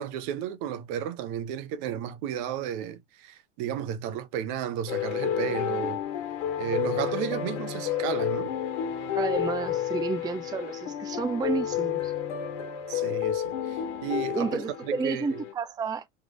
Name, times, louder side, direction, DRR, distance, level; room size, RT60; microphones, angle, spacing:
voice 1, 0.0-6.0 6.6-8.5 12.9-15.4, right 9 dB, 60° right, 0.9 m, -33 dB
sound 1, 4.9-15.5, left 10 dB, 75° left, 1.3 m, -31 dB
voice 2, 9.1-12.1 14.3-16.1, right 4 dB, 10° right, 0.4 m, -31 dB
3.4 x 3.2 x 3.7 m
hypercardioid pair, 95°, 36 cm